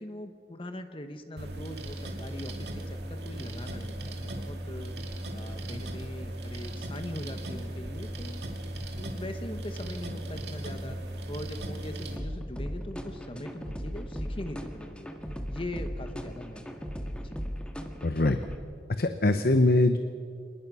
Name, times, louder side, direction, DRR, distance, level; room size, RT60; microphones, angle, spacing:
voice 1, 0.0-4.9 5.3-8.4 9.0-11.0 11.3-15.1 15.5-17.4, left 1 dB, 30° left, 8 dB, 1.2 m, -41 dB
sound 1, 1.4-12.2, right 1 dB, 70° right, 2.5 m, -37 dB
sound 2, 12.2-18.6, equal, 5° left, 1.6 m, -37 dB
voice 2, 18.0-18.4 19.0-20.0, left 2 dB, 55° left, 8 dB, 0.9 m, -22 dB
26.0 x 20.5 x 6.3 m, 2.3 s
head